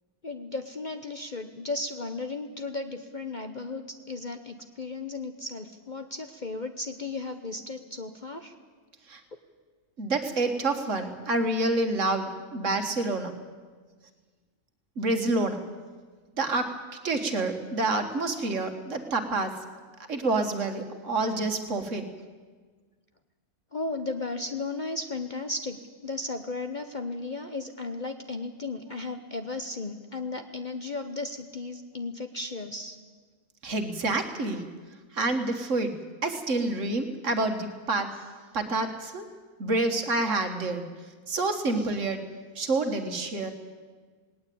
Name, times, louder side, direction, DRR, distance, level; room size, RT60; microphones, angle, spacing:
voice 1, 0.2-8.5 23.7-25.8 26.0-33.0, left 3 dB, 35° left, 7 dB, 0.9 m, -35 dB
voice 2, 10.0-13.3 15.0-15.6 16.4-16.7 17.0-19.6 20.1-22.1 33.6-34.7 35.1-36.0 36.2-38.2 38.5-39.3 39.6-40.9 41.3-42.2 42.6-43.5, right 2 dB, 55° right, 6 dB, 1.9 m, -28 dB
18.5 x 18.5 x 8.6 m, 1.5 s
omnidirectional pair, 1.6 m